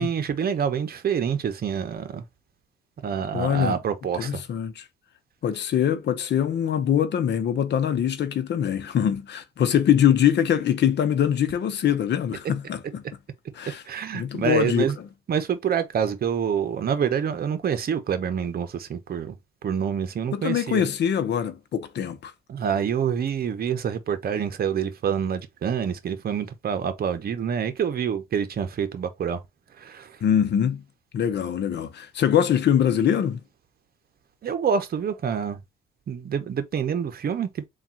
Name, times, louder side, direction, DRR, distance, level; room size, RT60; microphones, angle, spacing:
voice 1, 0.0-2.2 3.0-4.4 13.8-15.0 15.3-19.4 19.6-20.8 22.5-29.4 29.8-30.2 34.4-35.6 36.1-37.6, right 7 dB, 50° right, 0.8 m, -27 dB
voice 2, 3.3-3.8 4.2-4.8 5.4-13.0 13.6-13.8 14.1-14.9 20.3-22.3 30.2-30.8 31.1-33.4, left 9 dB, 60° left, 0.8 m, -23 dB
3.6 x 2.4 x 4.2 m
cardioid pair, 90°, 20 cm